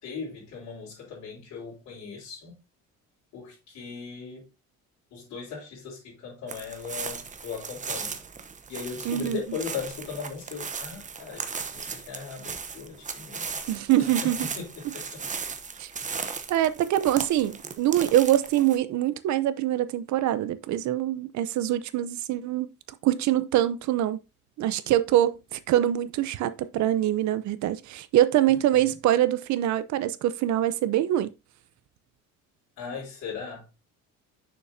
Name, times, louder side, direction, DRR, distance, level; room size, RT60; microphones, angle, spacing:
voice 1, 0.0-2.6 3.3-4.5 5.1-8.2 8.7-13.7 14.2-15.3 28.7-28.9 32.8-33.6, left 6 dB, 65° left, 3.7 m, -38 dB
sound 1, 6.5-18.8, right 5 dB, 25° right, 0.8 m, -37 dB
voice 2, 9.0-9.4 13.7-14.5 14.8-14.9 15.8-15.9 16.5-22.7 23.0-24.2 24.6-31.3, right 12 dB, 60° right, 0.7 m, -24 dB
6.5 x 6.3 x 2.7 m
cardioid pair, 110°, 32 cm